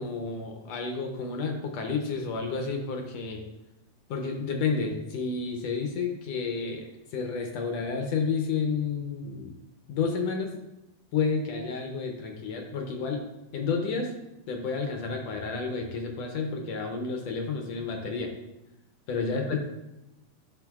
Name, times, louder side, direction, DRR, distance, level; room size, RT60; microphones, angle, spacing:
voice 1, 0.0-3.5 4.1-9.6 9.9-10.5 11.1-13.2 13.5-14.1 14.5-18.3 19.1-19.6, left 5 dB, 70° left, 3 dB, 1.7 m, -30 dB
10.5 x 5.8 x 2.3 m, 0.94 s
omnidirectional pair, 3.3 m